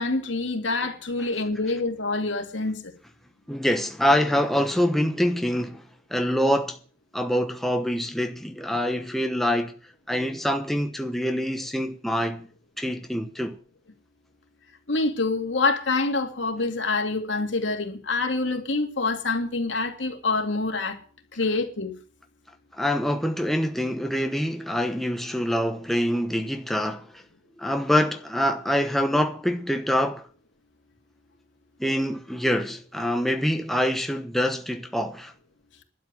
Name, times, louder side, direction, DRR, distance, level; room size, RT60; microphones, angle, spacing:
voice 1, 0.0-2.9 14.9-21.0 21.3-21.9, left 3 dB, 75° left, 2.5 m, -26 dB
voice 2, 3.5-6.8 7.1-9.7 10.1-12.5 12.8-13.6 22.8-27.2 27.6-30.3 31.8-35.3, equal, ahead, 1.0 m, -25 dB
12.5 x 7.2 x 8.9 m
head